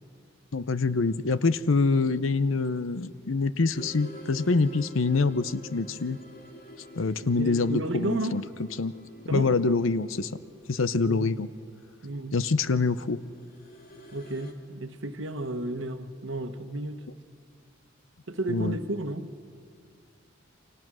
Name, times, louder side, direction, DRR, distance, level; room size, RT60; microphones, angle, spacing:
voice 1, 0.5-6.2 7.0-8.4 8.8-8.9 9.3-10.3 10.7-11.5 12.3-13.2 18.5-18.8, left 3 dB, 75° left, 14 dB, 0.7 m, -25 dB
sound 1, 3.7-14.5, left 1 dB, 45° left, 2.0 m, -48 dB
voice 2, 7.4-8.4 9.3-9.5 11.0-11.3 12.0-12.4 14.1-17.0 18.3-19.3, right 1 dB, 65° right, 8 dB, 1.2 m, -32 dB
29.0 x 24.5 x 6.3 m, 2.2 s
head